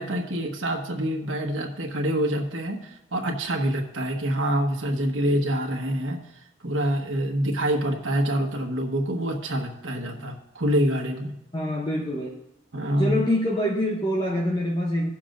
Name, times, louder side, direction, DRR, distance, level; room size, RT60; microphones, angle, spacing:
voice 1, 0.0-6.2 6.6-11.3 12.7-13.2, equal, 75° right, 1 dB, 1.3 m, -26 dB
voice 2, 11.5-12.4 13.0-15.1, left 1 dB, 25° left, -1 dB, 0.8 m, -25 dB
17.5 x 7.2 x 2.6 m, 0.87 s
head